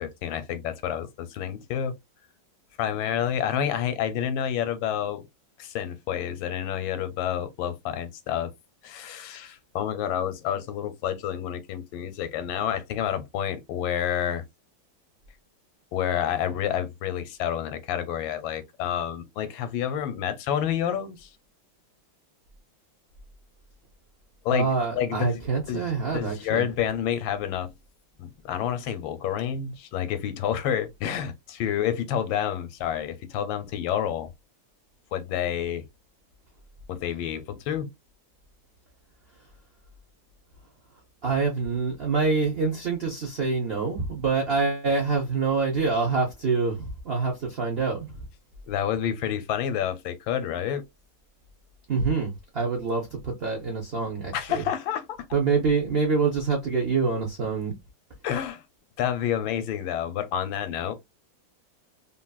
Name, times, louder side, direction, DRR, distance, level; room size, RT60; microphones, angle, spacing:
voice 1, 0.0-1.9 2.8-5.2 5.6-8.5 8.8-14.4 15.9-21.3 24.4-24.7 24.9-25.4 25.7-27.7 28.2-34.3 35.1-35.8 36.9-37.9 48.7-50.8 54.3-55.3 58.2-58.6 59.0-60.9, left 9 dB, 85° left, 1.4 m, -29 dB
voice 2, 24.5-26.6 41.2-48.1 51.9-54.6 55.3-57.7, right 4 dB, 80° right, 0.5 m, -26 dB
3.0 x 2.7 x 2.3 m
omnidirectional pair, 2.1 m